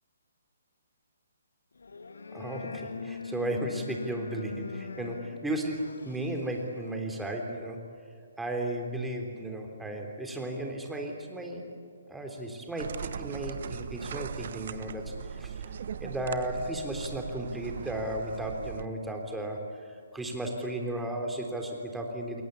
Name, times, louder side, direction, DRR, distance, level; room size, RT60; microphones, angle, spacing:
sound 1, 1.8-7.0, left 4 dB, 70° left, 1.9 m, -41 dB
voice 1, 2.3-7.8 8.4-11.7 12.1-15.7 16.0-22.4, right 1 dB, 5° right, 2 dB, 3.6 m, -35 dB
sound 2, 12.8-18.8, right 7 dB, 55° right, 1.2 m, -39 dB
29.0 x 21.5 x 8.6 m, 2.4 s
figure-of-eight pair, 135°, 0 cm